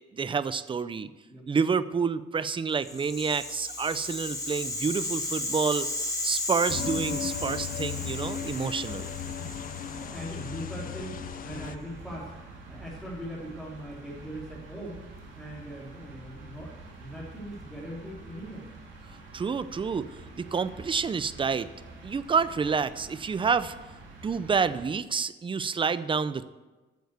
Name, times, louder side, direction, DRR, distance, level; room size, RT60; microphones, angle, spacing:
voice 1, 0.0-1.1 1.5-5.9 6.2-9.1 19.3-20.1 20.4-21.7 22.0-23.8 24.2-26.5, right 5 dB, 25° right, 15 dB, 0.5 m, -28 dB
Rattle (instrument), 2.8-11.0, left 2 dB, 15° left, 2.3 m, -35 dB
sound 1, 6.7-11.8, left 9 dB, 45° left, 0.5 m, -36 dB
voice 2, 6.7-7.3 8.0-8.1 9.4-15.1 15.3-18.7, right 1 dB, ahead, -8 dB, 3.2 m, -41 dB
sound 2, 6.8-24.9, right 2 dB, 70° right, 2.6 m, -47 dB
9.2 x 7.1 x 8.1 m, 1.2 s
cardioid pair, 90°, 20 cm